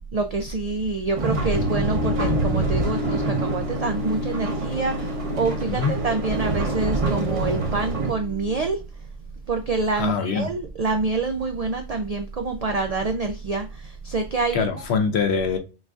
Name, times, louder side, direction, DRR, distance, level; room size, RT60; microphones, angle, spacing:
voice 1, 0.1-8.8 9.5-14.7, right 3 dB, 85° right, 6 dB, 0.3 m, -26 dB
sound 1, 1.2-8.1, right 3 dB, 35° right, 0.7 m, -26 dB
sound 2, 1.5-8.7, left 5 dB, 35° left, 0.6 m, -33 dB
voice 2, 10.0-10.5 14.5-15.6, left 5 dB, 65° left, 6 dB, 1.0 m, -23 dB
5.9 x 2.5 x 2.4 m, 0.32 s
omnidirectional pair, 1.2 m